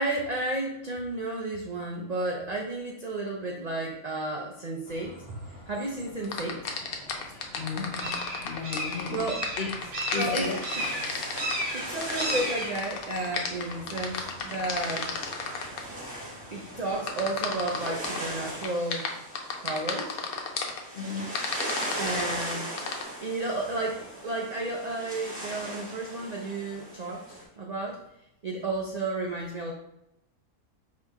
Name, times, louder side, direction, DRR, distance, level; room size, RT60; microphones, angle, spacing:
voice 1, 0.0-5.4 5.7-6.8 9.1-9.5 10.1-10.5 11.7-15.1 16.5-19.1 19.6-20.2 22.0-22.7 23.2-28.0 28.4-29.7, right 2 dB, 75° right, -1 dB, 0.3 m, -32 dB
sound 1, 4.9-18.7, right 1 dB, 60° right, 1.2 m, -38 dB
sound 2, 6.2-15.8 17.1-18.2 18.6-20.8 21.4-23.0, left 6 dB, 85° left, 1.1 m, -33 dB
voice 2, 7.3-9.7 10.1-10.6 13.9-14.0 16.2-16.3 20.9-21.3, left 4 dB, 55° left, 1 dB, 0.8 m, -35 dB
sound 3, 9.8-27.4, right 1 dB, 5° right, 1.2 m, -39 dB
4.5 x 2.8 x 3.5 m, 0.83 s
omnidirectional pair, 1.5 m